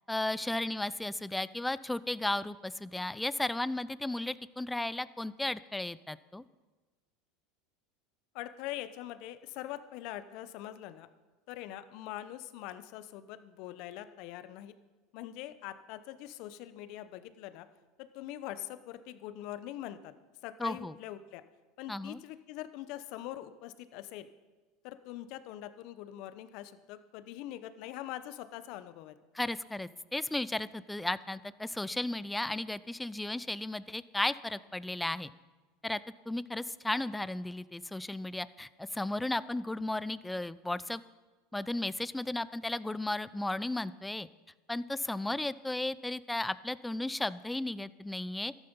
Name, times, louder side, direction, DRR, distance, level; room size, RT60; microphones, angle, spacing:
voice 1, 0.1-6.4 20.6-20.9 21.9-22.2 29.3-35.3 35.8-36.0 36.3-41.0 41.5-44.3 44.7-48.7, left 2 dB, 5° left, 17 dB, 0.4 m, -34 dB
voice 2, 8.3-11.1 11.5-14.7 15.1-17.7 18.0-20.1 20.4-21.4 21.8-24.3 24.8-29.1, left 13 dB, 60° left, 12 dB, 0.8 m, -43 dB
13.5 x 11.0 x 5.4 m, 1.3 s
supercardioid pair, 100°, 0 cm